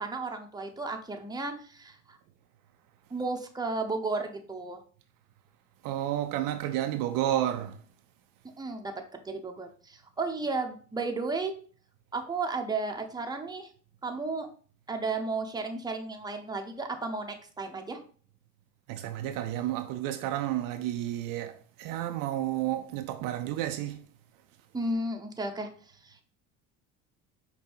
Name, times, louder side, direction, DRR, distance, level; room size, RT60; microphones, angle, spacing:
voice 1, 0.0-2.2 3.1-4.8 8.6-11.5 12.1-13.7 14.0-14.5 14.9-18.0 24.7-26.2, right 3 dB, 10° right, 0.8 m, -34 dB
voice 2, 5.8-7.8 18.9-21.5 21.8-24.1, right 12 dB, 65° right, 0.6 m, -31 dB
5.3 x 2.3 x 4.4 m
hypercardioid pair, 70°, 37 cm